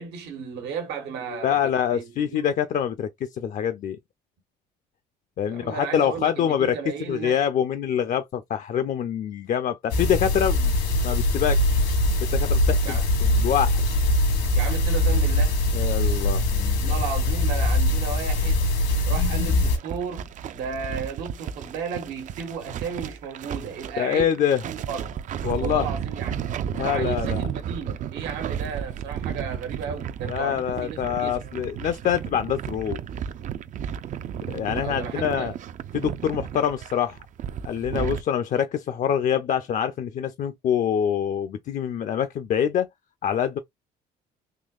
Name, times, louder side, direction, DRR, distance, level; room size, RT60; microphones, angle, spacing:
voice 1, 0.0-2.5 5.5-7.4 12.8-13.1 14.5-15.6 16.8-18.7 19.0-25.2 25.6-26.5 26.8-31.4 34.8-35.5, right 6 dB, 90° right, 1.4 m, -34 dB
voice 2, 1.4-4.0 5.4-6.8 7.1-10.7 11.0-11.8 12.2-13.8 15.7-16.4 24.0-24.6 25.4-25.9 26.7-27.5 30.3-33.0 34.5-35.5 35.9-37.2 37.6-42.9 43.2-43.6, left 9 dB, 50° left, 0.5 m, -25 dB
sound 1, 9.9-19.8, left 1 dB, 80° left, 1.6 m, -22 dB
sound 2, 19.7-38.2, right 9 dB, 50° right, 0.4 m, -33 dB
3.7 x 3.0 x 2.4 m
cardioid pair, 110°, 17 cm